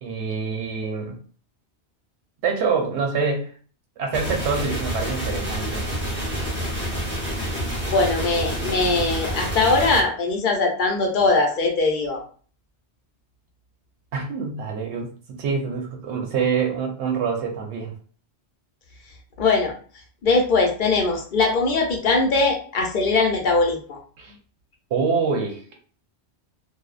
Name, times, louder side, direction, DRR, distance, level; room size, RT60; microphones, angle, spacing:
voice 1, 0.0-1.2 2.4-3.5 4.0-5.8 14.1-17.9 24.2-24.4 24.9-25.6, right 5 dB, 85° right, 2 dB, 0.9 m, -26 dB
sound 1, 4.1-10.0, equal, 10° right, 0.7 m, -28 dB
voice 2, 7.9-12.2 19.4-19.7 20.2-24.0, left 3 dB, 55° left, 2 dB, 0.7 m, -21 dB
2.6 x 2.1 x 2.4 m, 0.42 s
omnidirectional pair, 1.1 m